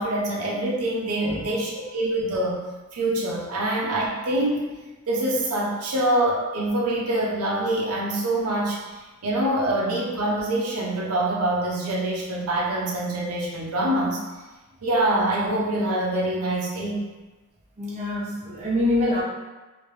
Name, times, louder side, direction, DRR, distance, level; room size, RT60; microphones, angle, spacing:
voice 1, 0.0-2.6 2.9-4.7 5.1-8.8 9.2-14.2 14.8-17.0, right 1 dB, 90° right, -3 dB, 0.7 m, -25 dB
voice 2, 17.8-19.2, left 1 dB, 30° right, -5 dB, 0.7 m, -25 dB
3.2 x 2.8 x 3.1 m, 1.2 s
head